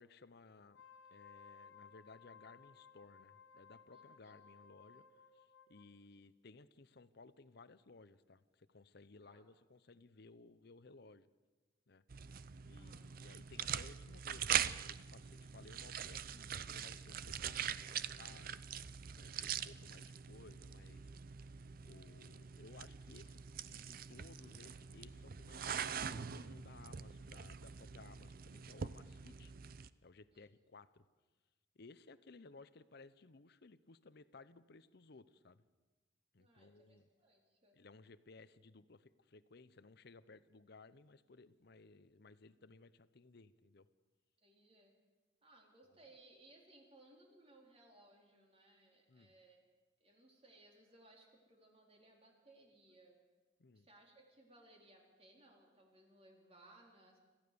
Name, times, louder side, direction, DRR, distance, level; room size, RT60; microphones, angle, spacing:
voice 1, 0.0-5.0 5.3-11.3 11.9-12.0 12.7-18.6 19.1-21.1 21.9-29.5 30.0-31.0 31.7-35.6 36.3-37.1 37.7-43.9 45.9-46.0 49.1-49.3 53.6-53.9, left 3 dB, 60° left, 14 dB, 0.8 m, -60 dB
Wind instrument woodwind instrument, 0.6-5.9, left 6 dB, 80° left, 1.9 m, -60 dB
voice 2, 3.9-4.4 9.2-9.4 12.8-13.0 30.3-30.5 36.4-37.8 44.4-44.9 45.4-49.7 50.0-53.2 53.7-57.2, right 2 dB, 30° right, 0 dB, 3.9 m, -64 dB
sound 1, 12.1-29.9, right 8 dB, 50° right, 0.5 m, -43 dB
26.0 x 14.5 x 6.9 m, 1.3 s
head